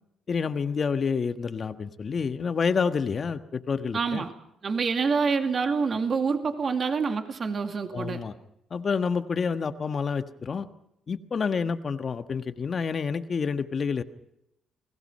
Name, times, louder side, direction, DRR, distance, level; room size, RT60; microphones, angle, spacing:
voice 1, 0.3-4.2 7.9-8.3 8.7-10.7 11.1-14.0, left 5 dB, 45° left, 9 dB, 1.5 m, -28 dB
voice 2, 3.9-4.3 4.6-8.2, right 5 dB, 45° right, 6 dB, 2.3 m, -26 dB
29.5 x 19.5 x 5.6 m, 0.80 s
cardioid pair, 90°, 0 cm